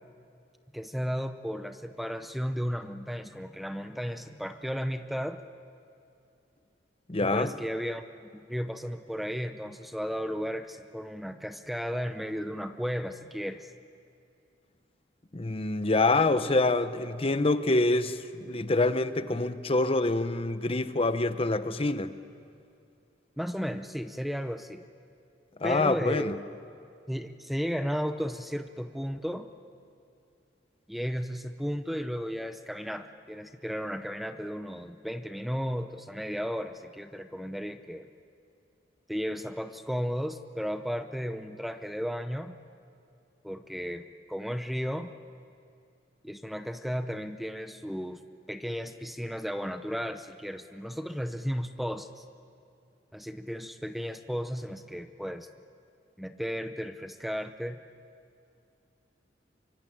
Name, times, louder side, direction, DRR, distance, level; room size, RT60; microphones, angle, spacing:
voice 1, 0.7-5.4 7.2-8.0 8.3-13.7 23.4-24.8 25.6-26.3 27.1-29.5 30.9-38.1 39.1-42.6 43.4-45.1 46.2-48.2 48.5-52.2 53.1-55.5 56.2-57.8, equal, ahead, 9 dB, 0.7 m, -34 dB
voice 2, 7.1-7.5 15.3-22.1 25.6-26.3, left 2 dB, 30° left, 11 dB, 0.9 m, -26 dB
24.5 x 24.0 x 8.7 m, 2.6 s
head